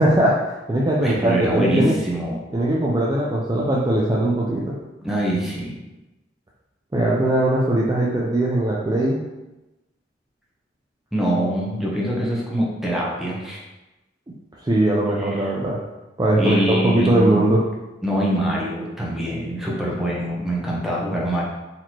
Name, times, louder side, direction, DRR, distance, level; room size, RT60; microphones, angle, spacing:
voice 1, 0.0-2.0 2.5-4.8 6.9-9.2 14.6-15.8 16.2-17.6, right 1 dB, 20° right, -5 dB, 0.4 m, -20 dB
voice 2, 1.0-2.4 5.0-5.8 11.1-13.6 15.2-15.5 16.4-17.4 18.0-21.4, right 1 dB, ahead, -5 dB, 0.8 m, -24 dB
4.1 x 3.0 x 2.9 m, 1.0 s
head